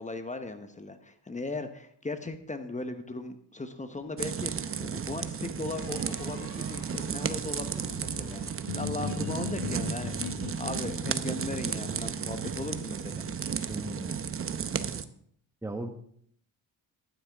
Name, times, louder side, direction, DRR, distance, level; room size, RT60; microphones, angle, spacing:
voice 1, 0.0-8.4 8.7-13.2, left 2 dB, 15° left, 8 dB, 1.1 m, -38 dB
sound 1, 4.0-4.8 5.8-9.3, left 2 dB, 55° left, 5.4 m, -49 dB
sound 2, 4.2-15.0, right 7 dB, 30° right, 0.8 m, -34 dB
sound 3, 8.7-14.3, left 9 dB, 75° left, 0.8 m, -41 dB
voice 2, 13.7-14.3 15.6-15.9, right 2 dB, 5° right, 5 dB, 1.2 m, -37 dB
15.0 x 11.5 x 3.6 m, 0.65 s
cardioid pair, 105°, 42 cm